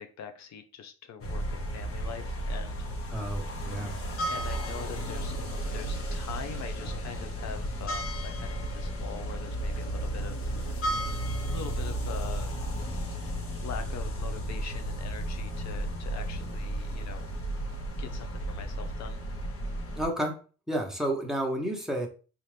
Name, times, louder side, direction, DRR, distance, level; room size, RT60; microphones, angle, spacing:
voice 1, 0.0-3.3 3.9-5.3 5.7-10.6 11.3-17.3 18.0-19.2, left 7 dB, 65° left, 7 dB, 0.6 m, -43 dB
sound 1, 1.2-20.1, right 1 dB, 45° left, 1.0 m, -33 dB
voice 2, 3.1-3.9 20.0-20.4 20.7-22.1, right 1 dB, ahead, 2 dB, 1.0 m, -31 dB
4.2 x 2.5 x 3.3 m, 0.36 s
cardioid pair, 90°, 30 cm